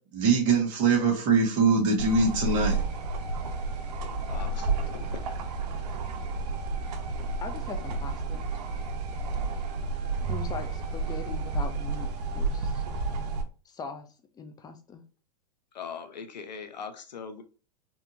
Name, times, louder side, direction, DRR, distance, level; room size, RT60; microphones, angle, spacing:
voice 1, 0.1-2.8, right 4 dB, 40° right, 1.8 m, -23 dB
sound 1, 2.0-13.4, right 3 dB, 70° right, 0.9 m, -31 dB
voice 2, 4.3-5.2 15.7-17.4, left 6 dB, 90° left, 0.8 m, -40 dB
voice 3, 7.4-8.5 10.3-12.1 12.3-12.8 13.7-14.1 14.3-15.0, left 5 dB, 20° left, 0.6 m, -40 dB
4.3 x 2.8 x 2.7 m
hypercardioid pair, 120°, 21 cm